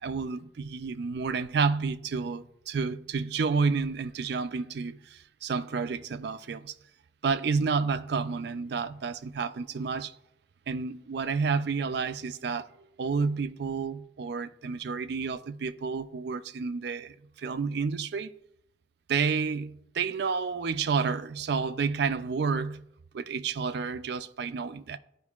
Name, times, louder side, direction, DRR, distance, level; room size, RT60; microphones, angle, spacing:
voice 1, 0.0-6.7 7.2-10.2 10.7-18.3 19.1-22.8 23.1-25.0, right 5 dB, 65° right, 0.4 m, -30 dB
14.0 x 5.1 x 2.4 m
head